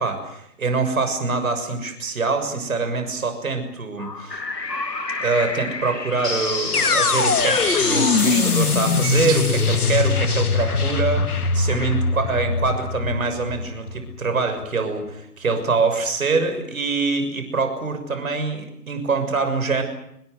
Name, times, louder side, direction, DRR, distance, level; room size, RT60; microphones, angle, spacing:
voice 1, 0.0-4.4 5.2-19.8, right 4 dB, 55° right, 8 dB, 6.6 m, -24 dB
sound 1, 4.0-10.5, left 3 dB, 85° left, 2.3 m, -29 dB
sound 2, 6.7-14.7, left 4 dB, 65° left, 2.3 m, -22 dB
sound 3, 7.2-8.3 8.8-10.2 10.5-10.6 11.7-11.8, right 9 dB, 20° right, 2.6 m, -37 dB
27.0 x 20.5 x 7.9 m, 0.76 s
figure-of-eight pair, 150°, 48 cm